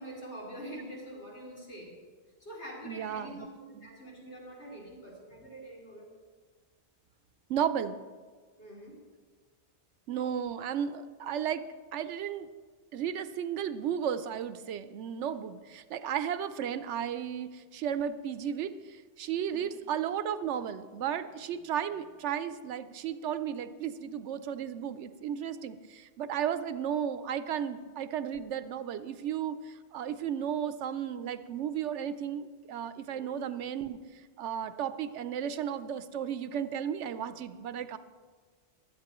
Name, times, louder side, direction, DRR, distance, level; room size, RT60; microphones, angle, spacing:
voice 1, 0.0-1.9 2.4-6.1 8.6-9.0 19.4-19.7 33.1-33.4, right 1 dB, 70° left, -4 dB, 3.3 m, -45 dB
voice 2, 2.8-3.5 3.8-3.9 7.5-8.0 10.1-12.5 12.9-38.0, right 8 dB, 85° right, 12 dB, 0.9 m, -34 dB
16.0 x 12.0 x 3.0 m, 1.5 s
omnidirectional pair, 1.2 m